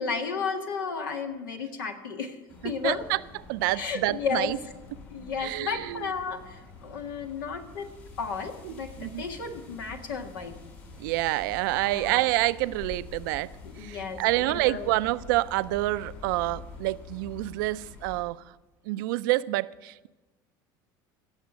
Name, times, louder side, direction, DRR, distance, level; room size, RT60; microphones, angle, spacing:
voice 1, 0.0-2.4 2.6-3.1 3.7-4.5 5.1-10.6 11.8-12.3 13.6-14.9, left 5 dB, 90° left, 4 dB, 1.6 m, -33 dB
sound 1, 2.5-18.2, left 4 dB, 70° left, 5.2 m, -46 dB
voice 2, 2.8-3.2 3.5-4.6 5.4-6.1 8.6-9.2 11.0-13.5 13.8-18.4 18.9-20.1, right 18 dB, 80° right, 16 dB, 0.5 m, -28 dB
17.0 x 7.3 x 6.1 m, 1.2 s
hypercardioid pair, 85°, 11 cm